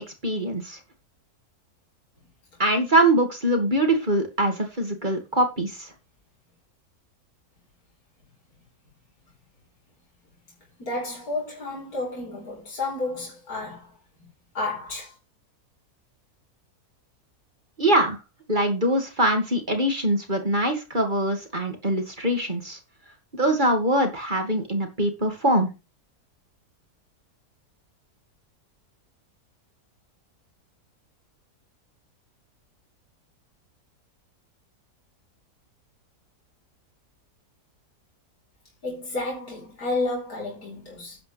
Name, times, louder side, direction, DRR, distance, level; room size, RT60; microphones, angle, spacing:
voice 1, 0.2-0.8 2.6-5.9 17.8-18.2 18.5-22.8 23.3-25.7, right 1 dB, 30° right, 2.3 m, -23 dB
voice 2, 10.8-14.0 14.5-15.1 38.8-41.2, left 2 dB, 70° left, 4.8 m, -31 dB
11.5 x 9.4 x 3.4 m
omnidirectional pair, 1.7 m